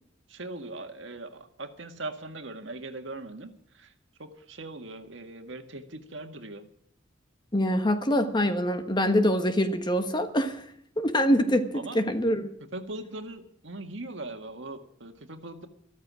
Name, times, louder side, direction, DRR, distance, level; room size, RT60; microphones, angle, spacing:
voice 1, 0.3-3.9 4.2-6.6 11.7-12.0 12.7-15.7, right 2 dB, 70° right, 6 dB, 1.8 m, -40 dB
voice 2, 7.5-10.6 11.0-11.7 11.9-12.5, equal, 25° left, 8 dB, 1.3 m, -24 dB
14.0 x 13.5 x 6.3 m, 0.70 s
head